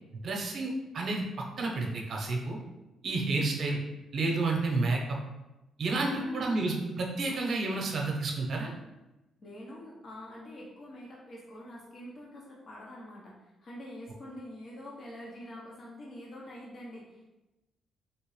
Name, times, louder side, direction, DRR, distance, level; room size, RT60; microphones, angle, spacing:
voice 1, 0.2-1.3 1.6-2.6 3.0-3.8 4.1-5.2 5.8-8.7, right 3 dB, 55° right, 0 dB, 0.8 m, -30 dB
voice 2, 5.9-6.7 9.4-13.3 13.6-17.2, left 1 dB, 45° left, -4 dB, 0.9 m, -45 dB
3.4 x 2.9 x 3.1 m, 1.0 s
cardioid pair, 90°, 0 cm